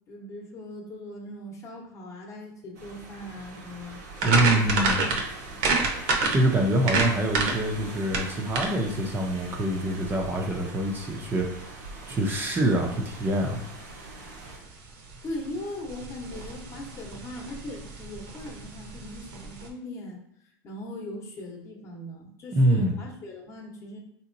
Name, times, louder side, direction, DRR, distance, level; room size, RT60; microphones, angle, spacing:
voice 1, 0.1-4.0 4.5-5.7 15.2-20.2 20.6-24.0, left 1 dB, 35° left, 0 dB, 0.9 m, -40 dB
sound 1, 2.7-14.6, right 2 dB, 85° right, 1.0 m, -43 dB
voice 2, 4.2-5.1 6.3-11.6 12.1-13.6 22.5-23.0, right 1 dB, 25° right, 1 dB, 0.5 m, -25 dB
sound 2, 4.2-19.7, right 3 dB, 60° right, 0.8 m, -31 dB
3.6 x 2.9 x 2.6 m, 0.75 s
supercardioid pair, 130°, 9 cm